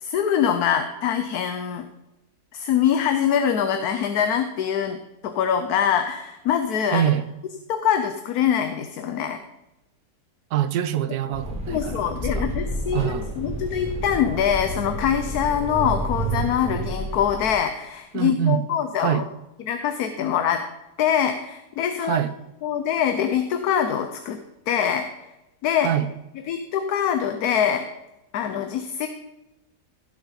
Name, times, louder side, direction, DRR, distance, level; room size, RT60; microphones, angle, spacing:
voice 1, 0.0-1.9 2.5-7.1 7.7-9.4 11.7-19.2 19.7-20.6 21.0-22.2 22.6-24.4 24.7-25.1 25.6-25.9 26.5-27.9 28.3-29.1, left 8 dB, 70° left, 1.2 m, -24 dB
voice 2, 6.9-7.2 10.5-12.5 12.9-13.3 18.1-18.6 19.0-19.3 22.0-22.3 25.8-26.1, right 10 dB, 70° right, 1.2 m, -24 dB
sound 1, 11.3-17.5, right 1 dB, 5° right, 2.0 m, -30 dB
16.5 x 7.1 x 4.0 m
omnidirectional pair, 1.8 m